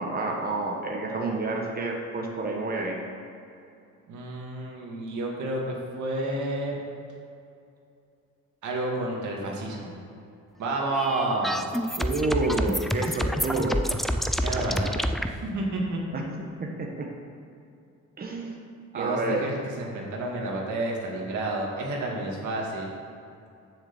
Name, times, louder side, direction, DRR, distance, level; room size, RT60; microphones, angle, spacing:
voice 1, 0.0-3.0 12.0-13.9 16.1-16.2 16.6-16.7 17.0-17.1 18.2-18.6 18.9-19.5, right 2 dB, 30° right, 0 dB, 1.4 m, -29 dB
voice 2, 4.1-6.7 8.6-9.9 10.6-11.8 14.4-16.0 18.9-22.9, right 2 dB, 75° right, -1 dB, 2.1 m, -30 dB
sound 1, 10.9-15.3, equal, ahead, 0.5 m, -28 dB
7.1 x 6.9 x 7.1 m, 2.6 s
cardioid pair, 90°, 30 cm